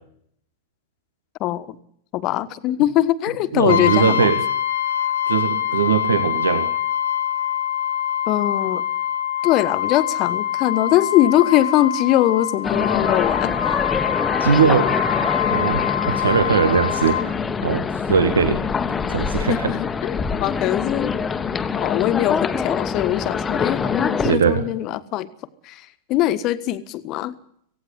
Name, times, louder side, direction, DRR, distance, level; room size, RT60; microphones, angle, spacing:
voice 1, 1.4-1.8 2.1-4.3 8.3-8.8 9.4-13.8 19.5-21.1 21.7-25.3 25.6-27.3, left 13 dB, 40° left, 15 dB, 1.5 m, -21 dB
voice 2, 3.5-4.4 5.3-6.7 14.4-14.9 15.5-17.3 17.6-18.6 18.9-19.7 24.2-24.6, right 6 dB, 70° right, 10 dB, 1.8 m, -20 dB
Brass instrument, 3.7-17.3, left 10 dB, 65° left, 1.7 m, -24 dB
sound 1, 12.6-24.3, left 5 dB, 20° left, 1.3 m, -24 dB
18.0 x 17.0 x 9.9 m, 0.66 s
figure-of-eight pair, 90°, 0 cm